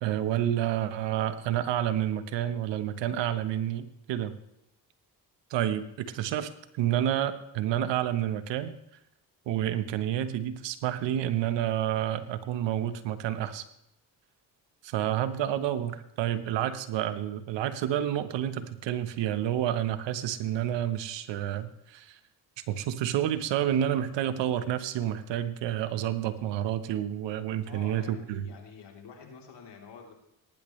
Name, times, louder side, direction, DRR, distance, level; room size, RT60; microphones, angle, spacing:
voice 1, 0.0-4.3 5.5-8.7 9.5-13.6 14.8-22.2 22.7-28.5, right 11 dB, 90° right, 11 dB, 1.2 m, -29 dB
voice 2, 27.7-30.1, left 5 dB, 75° left, 1 dB, 3.5 m, -48 dB
18.5 x 10.5 x 3.2 m, 0.79 s
cardioid pair, 70°, 42 cm